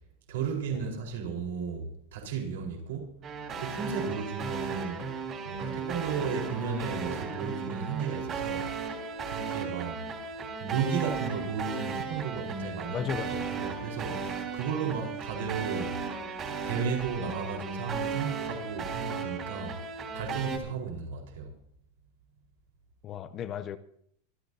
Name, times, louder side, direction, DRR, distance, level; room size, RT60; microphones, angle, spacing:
voice 1, 0.3-3.2 3.6-5.0 5.4-8.7 9.3-10.0 10.6-16.0 16.6-19.8 20.1-21.5, right 6 dB, 80° right, 4.2 m, -34 dB
sound 1, 3.2-20.6, right 5 dB, 25° right, 3.1 m, -35 dB
voice 2, 12.9-13.5 23.0-23.8, left 8 dB, 25° left, 0.6 m, -34 dB
25.0 x 13.0 x 2.7 m
supercardioid pair, 175°, 0 cm